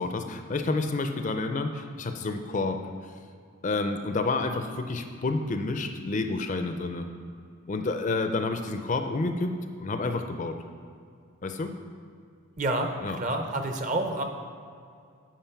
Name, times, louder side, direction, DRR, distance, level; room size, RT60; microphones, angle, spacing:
voice 1, 0.0-2.8 3.6-7.1 7.7-9.5 9.8-10.6 11.4-11.7 13.0-13.2, left 3 dB, 35° left, 6 dB, 0.4 m, -29 dB
voice 2, 12.6-14.2, right 2 dB, 35° right, 5 dB, 0.6 m, -29 dB
8.9 x 4.7 x 5.8 m, 2.3 s
head